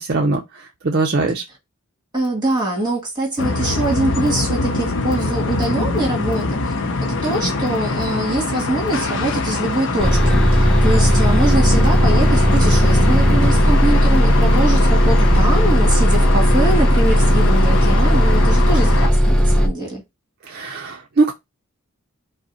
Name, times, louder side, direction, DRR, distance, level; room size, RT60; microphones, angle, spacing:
voice 1, 0.0-1.4 20.5-21.3, right 3 dB, 45° right, 0.5 m, -21 dB
voice 2, 2.1-6.9 7.2-20.0, right 2 dB, 20° right, 1.9 m, -23 dB
sound 1, 3.4-19.1, left 3 dB, 55° left, 0.5 m, -23 dB
Bus, 10.0-19.7, equal, 5° left, 0.6 m, -15 dB
5.2 x 2.1 x 4.0 m
head